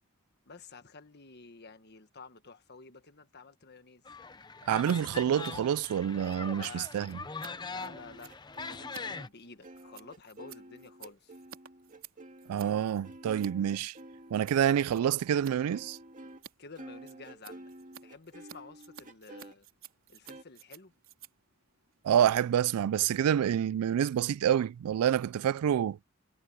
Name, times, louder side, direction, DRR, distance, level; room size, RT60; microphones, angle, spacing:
voice 1, 0.4-4.0 6.5-6.9 7.7-8.3 8.6-11.3 16.6-17.7 18.0-19.7 20.1-20.9, left 4 dB, 50° left, 1.5 m, -51 dB
sound 1, 4.0-9.3, left 4 dB, 20° left, 0.6 m, -42 dB
voice 2, 4.7-7.2 12.5-13.9 14.3-16.0 22.0-26.0, right 9 dB, 85° right, 0.3 m, -27 dB
Scissors, 4.8-5.0 5.2-13.5 13.8-14.6 14.9-15.5 15.8-22.6, right 8 dB, 65° right, 3.6 m, -53 dB
sound 2, 7.8-16.5 16.8-19.5 20.2-20.4, right 1 dB, 35° right, 2.1 m, -50 dB
head